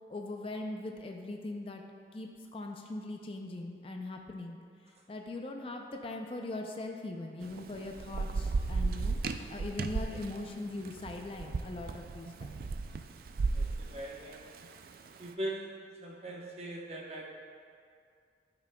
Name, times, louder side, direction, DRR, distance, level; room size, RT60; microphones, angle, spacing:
voice 1, 0.1-1.8 2.1-4.6 5.1-9.2 9.5-12.6 16.3-16.4, left 2 dB, 30° left, 3 dB, 0.4 m, -40 dB
Thunder / Rain, 7.4-15.1, right 4 dB, 55° right, 0.3 m, -35 dB
voice 2, 13.5-14.5 15.2-17.2, right 1 dB, 35° right, -2 dB, 0.9 m, -41 dB
13.0 x 5.9 x 2.2 m, 2.3 s
head